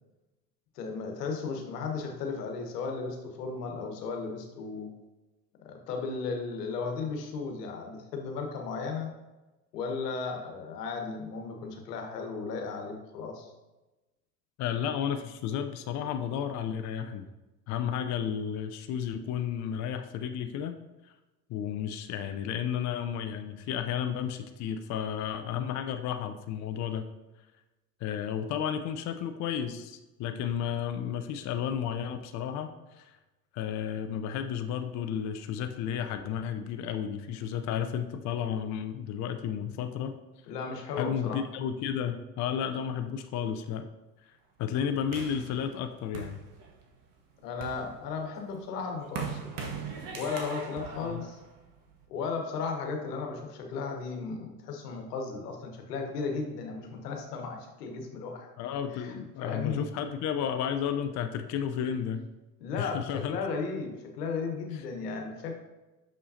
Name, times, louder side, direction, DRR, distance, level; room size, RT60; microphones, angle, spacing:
voice 1, 0.7-4.9 5.6-9.1 9.7-13.5 40.5-41.4 47.4-49.5 50.1-51.4 52.1-58.5 58.9-59.1 59.4-59.9 62.6-65.6, left 4 dB, 80° left, 3 dB, 1.3 m, -35 dB
voice 2, 14.6-17.3 17.7-20.8 21.0-21.1 21.5-27.0 28.0-33.2 33.5-40.2 41.0-43.9 44.2-44.3 44.6-46.4 51.0-51.2 58.6-62.2 62.8-63.4 64.7-64.8, left 8 dB, 40° left, 8 dB, 0.5 m, -32 dB
sound 1, 45.1-46.9 47.4-52.0, right 5 dB, 45° right, 1.3 m, -40 dB
6.4 x 5.5 x 2.8 m, 1.1 s
hypercardioid pair, 80°, 47 cm